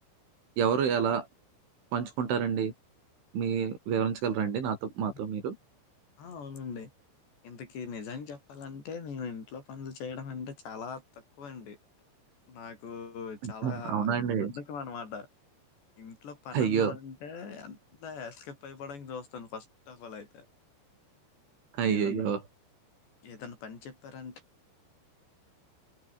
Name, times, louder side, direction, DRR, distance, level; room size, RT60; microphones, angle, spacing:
voice 1, 0.6-1.3 1.9-2.7 3.3-5.6 13.4-14.5 16.5-17.0 21.8-22.4, right 7 dB, 85° right, 7.2 m, -28 dB
voice 2, 6.2-6.9 7.4-11.8 12.5-14.1 14.4-15.3 16.0-20.5 21.9-22.2 23.2-24.4, left 5 dB, 65° left, 7.7 m, -41 dB
omnidirectional pair, 5.3 m